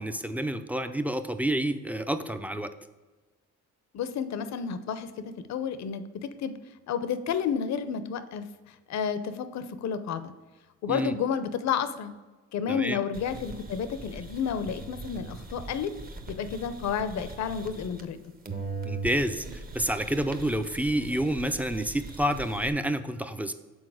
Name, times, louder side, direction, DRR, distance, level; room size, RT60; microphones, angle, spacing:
voice 1, 0.0-2.7 10.9-11.1 12.7-13.0 18.8-23.5, right 1 dB, 5° right, 9 dB, 0.4 m, -29 dB
voice 2, 3.9-6.5 6.9-10.3 10.8-12.1 12.5-15.9 16.3-18.2, left 7 dB, 65° left, 11 dB, 0.6 m, -31 dB
sound 1, 13.1-18.2 18.5-22.7, right 3 dB, 30° right, 0.7 m, -40 dB
6.3 x 4.2 x 4.8 m, 1.2 s
cardioid pair, 90°, 30 cm